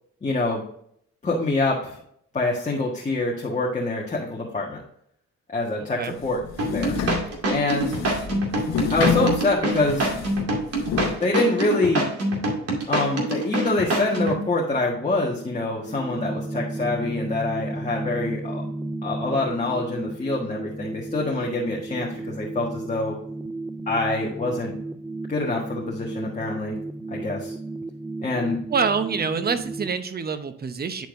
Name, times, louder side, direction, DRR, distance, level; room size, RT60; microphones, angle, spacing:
voice 1, 0.2-0.6 1.2-2.0 2.3-4.8 5.5-6.4 6.7-6.9 7.5-7.9 8.9-10.1 11.2-12.1 12.9-18.6 19.0-23.1 23.9-24.7 25.3-26.7 27.1-27.5 28.2-28.6, left 2 dB, 25° left, -2 dB, 1.5 m, -25 dB
sound 1, 6.2-11.2, left 7 dB, 60° left, 1.1 m, -28 dB
sound 2, 6.6-14.4, right 1 dB, 50° right, 2.3 m, -25 dB
sound 3, 12.6-30.0, right 2 dB, 10° right, 0.4 m, -35 dB
voice 2, 28.7-31.1, right 5 dB, 30° right, 10 dB, 0.9 m, -26 dB
10.0 x 4.4 x 2.6 m, 0.68 s
cardioid pair, 90°, 30 cm